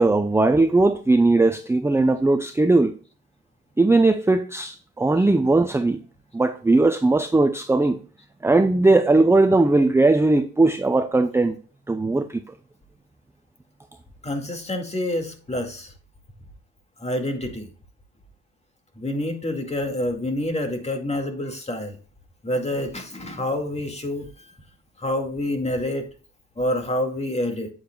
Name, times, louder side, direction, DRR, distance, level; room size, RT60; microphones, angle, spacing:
voice 1, 0.0-2.9 3.8-6.0 6.3-8.0 8.4-11.6 11.9-12.5, right 2 dB, 10° right, 0.6 m, -19 dB
voice 2, 14.2-15.9 17.0-17.7 19.0-22.0 22.4-24.5 25.0-26.1 26.6-27.7, left 1 dB, 20° left, 2.1 m, -27 dB
9.0 x 8.0 x 2.3 m
cardioid pair, 90°, 30 cm